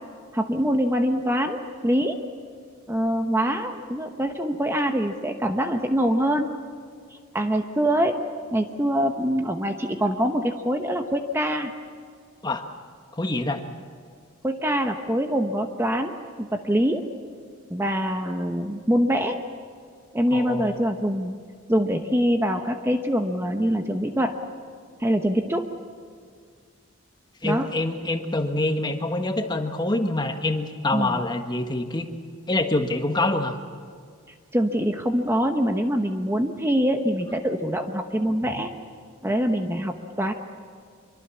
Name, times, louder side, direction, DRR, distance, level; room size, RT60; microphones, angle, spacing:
voice 1, 0.3-2.2 2.9-6.5 7.3-8.1 8.5-11.7 14.4-17.0 17.7-19.4 20.1-21.3 21.7-24.4 25.0-25.6 27.4-27.7 30.9-31.2 34.5-38.7 39.2-40.3, equal, 10° right, 5 dB, 1.0 m, -24 dB
voice 2, 13.1-13.6 20.3-20.8 27.4-32.1 32.5-33.6 38.4-38.6, left 2 dB, 20° left, 5 dB, 1.4 m, -26 dB
25.5 x 23.5 x 7.1 m, 2.1 s
head